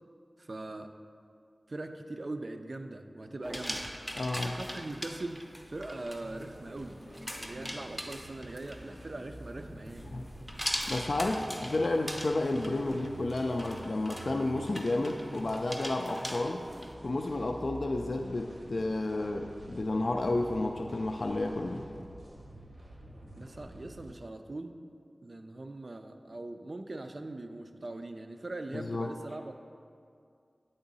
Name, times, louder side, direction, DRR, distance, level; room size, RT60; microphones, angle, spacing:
voice 1, 0.4-0.9 1.7-3.9 4.4-7.0 7.4-10.2 23.4-24.8 25.2-29.6, right 2 dB, 55° right, 7 dB, 0.4 m, -41 dB
sound 1, 3.4-16.9, equal, ahead, 0.5 m, -42 dB
voice 2, 4.1-4.6 10.1-10.2 10.5-16.6 17.0-21.8 28.7-29.1, left 2 dB, 70° left, 2 dB, 0.3 m, -31 dB
sound 2, 5.9-24.1, right 1 dB, 75° right, 0.9 m, -49 dB
8.7 x 3.8 x 4.0 m, 2.4 s
wide cardioid pair, 65°, 0 cm